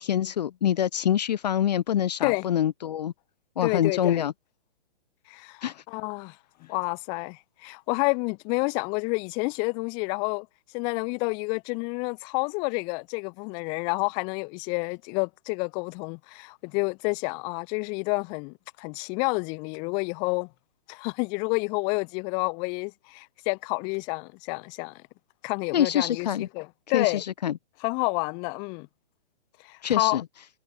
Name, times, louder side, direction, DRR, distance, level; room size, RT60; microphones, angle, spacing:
voice 1, 0.0-3.1 3.6-4.3 5.6-5.7 25.7-26.5 26.9-27.5 29.8-30.2, left 10 dB, 45° left, 0.7 m, -25 dB
voice 2, 3.6-4.2 5.3-6.4 6.7-10.5 10.7-20.5 20.9-25.0 25.4-27.2 27.8-28.9 29.6-30.2, left 34 dB, 15° left, 0.8 m, -29 dB
hypercardioid pair, 170°, 29 cm